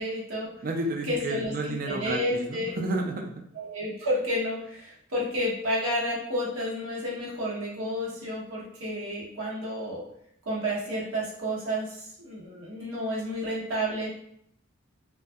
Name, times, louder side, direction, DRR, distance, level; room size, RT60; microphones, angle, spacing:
voice 1, 0.0-0.5 1.1-2.8 3.6-10.0 10.5-14.1, equal, 90° right, -5 dB, 0.9 m, -31 dB
voice 2, 0.6-3.4, right 2 dB, 40° right, 2 dB, 0.3 m, -31 dB
2.3 x 2.2 x 2.6 m, 0.71 s
head